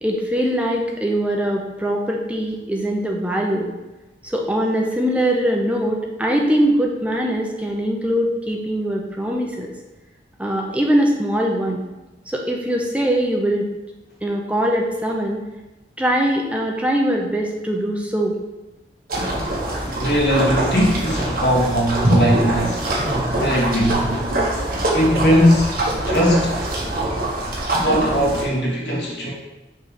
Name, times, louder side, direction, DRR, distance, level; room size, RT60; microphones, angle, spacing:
voice 1, 0.0-3.7 4.2-9.7 10.4-11.8 12.3-13.7 14.2-15.4 16.0-18.4, equal, 5° right, 0 dB, 0.6 m, -22 dB
sound 1, 19.1-28.4, right 1 dB, 60° right, 1.4 m, -23 dB
voice 2, 19.8-22.9 23.4-24.2 24.9-26.6 27.7-29.3, equal, 75° left, -4 dB, 2.0 m, -19 dB
6.4 x 3.2 x 5.7 m, 1.1 s
head